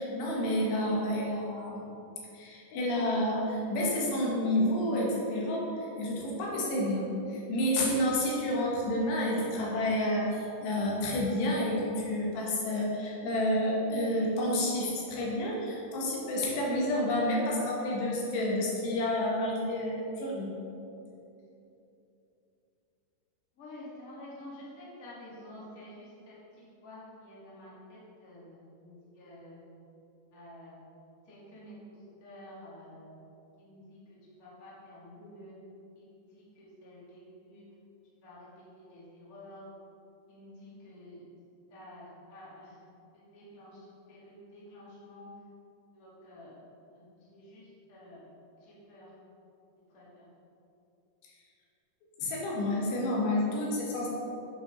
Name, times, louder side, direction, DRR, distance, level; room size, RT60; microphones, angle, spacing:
voice 1, 0.0-1.9 2.3-5.7 6.0-20.5 52.2-54.1, left 1 dB, 90° left, -3 dB, 3.7 m, -29 dB
voice 2, 23.6-29.6 30.3-30.7 31.3-31.7 32.2-33.1 33.6-35.6 36.0-37.6 38.2-39.6 40.3-41.2 41.7-42.8 43.1-45.3 45.9-46.5 46.9-47.6 47.9-48.2 48.6-49.1 49.9-50.3, left 1 dB, 30° left, -7 dB, 1.9 m, -50 dB
8.7 x 6.2 x 5.3 m, 2.8 s
omnidirectional pair, 4.7 m